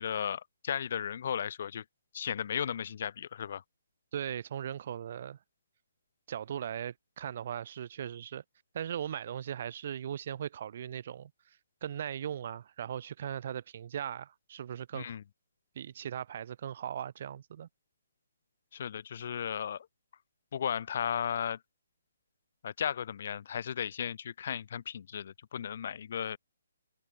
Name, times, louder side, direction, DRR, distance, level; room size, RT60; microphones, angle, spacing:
voice 1, 0.0-1.8 2.1-3.6 14.9-15.2 18.7-19.9 20.5-21.6 22.6-26.4, left 8 dB, 50° left, 3.0 m, -35 dB
voice 2, 4.1-5.4 6.3-8.4 8.7-11.3 11.8-15.2 15.8-17.7, right 9 dB, 50° right, 3.7 m, -38 dB
hypercardioid pair, 155°, 0 cm